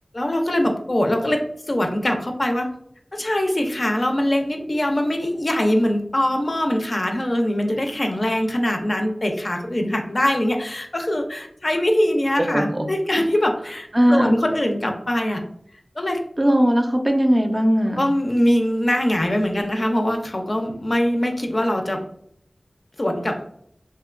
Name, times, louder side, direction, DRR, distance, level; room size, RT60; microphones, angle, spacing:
voice 1, 0.1-2.7 3.1-15.4 16.0-16.2 18.0-22.0 23.0-23.5, left 1 dB, 55° left, 3 dB, 0.4 m, -22 dB
voice 2, 12.5-12.9 13.9-14.4 16.4-18.1, equal, 35° right, 4 dB, 0.4 m, -18 dB
2.8 x 2.2 x 2.3 m, 0.67 s
wide cardioid pair, 40°, 0 cm